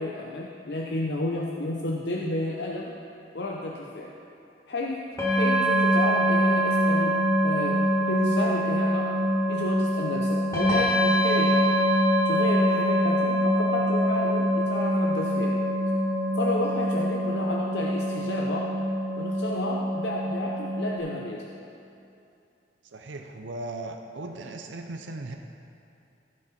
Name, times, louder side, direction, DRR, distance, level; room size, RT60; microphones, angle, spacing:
voice 1, 0.0-2.9 3.3-4.1 4.7-5.0 5.3-7.2 7.4-9.1 9.5-11.7 12.2-15.6 16.3-18.7 19.1-21.5, left 1 dB, 65° left, -2 dB, 0.7 m, -31 dB
sound 1, 5.2-21.0, equal, 15° left, 1.7 m, -24 dB
voice 2, 22.9-25.4, right 2 dB, 90° right, 4 dB, 0.6 m, -37 dB
15.0 x 6.5 x 4.3 m, 2.7 s
head